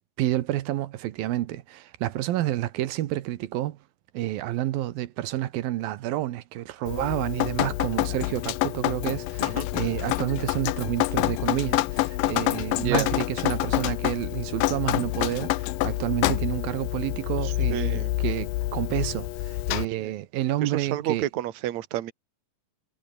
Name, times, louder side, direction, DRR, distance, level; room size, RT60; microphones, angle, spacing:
voice 1, 0.2-3.8 4.1-21.3, right 14 dB, 85° right, 2.9 m, -29 dB
Drip, 6.9-19.9, left 18 dB, 80° left, 2.4 m, -27 dB
voice 2, 12.7-13.1 17.4-18.1 20.0-20.1 20.6-22.1, right 13 dB, 60° right, 2.5 m, -30 dB
omnidirectional pair, 4.1 m